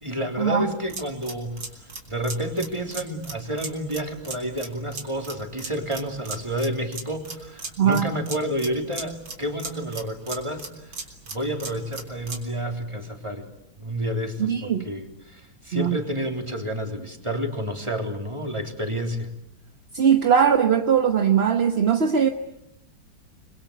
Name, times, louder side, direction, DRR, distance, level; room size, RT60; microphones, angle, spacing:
voice 1, 0.0-11.1 11.3-13.5 13.8-19.3, equal, 15° right, 3 dB, 3.4 m, -30 dB
sound 1, 0.7-12.5, right 4 dB, 75° right, 4.5 m, -38 dB
voice 2, 7.8-8.1 14.4-14.9 15.7-16.0 19.9-22.3, right 7 dB, 35° right, 6 dB, 1.2 m, -20 dB
29.0 x 22.5 x 8.1 m, 0.80 s
omnidirectional pair, 2.2 m